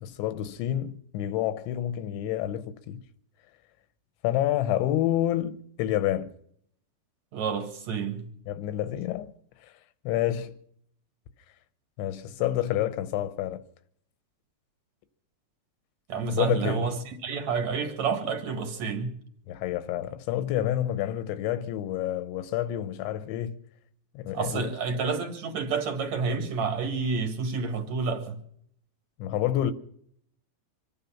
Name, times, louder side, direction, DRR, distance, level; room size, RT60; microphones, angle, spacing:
voice 1, 0.0-3.0 4.2-6.3 8.5-9.3 9.6-9.7 10.1-10.6 12.0-13.6 16.3-16.9 19.5-23.6 24.2-24.7 29.2-29.7, left 12 dB, 85° left, 3.2 m, -28 dB
voice 2, 7.3-8.3 12.4-12.5 16.1-19.1 24.3-28.4, right 5 dB, 50° right, 2.3 m, -29 dB
26.0 x 9.5 x 5.8 m
omnidirectional pair, 5.3 m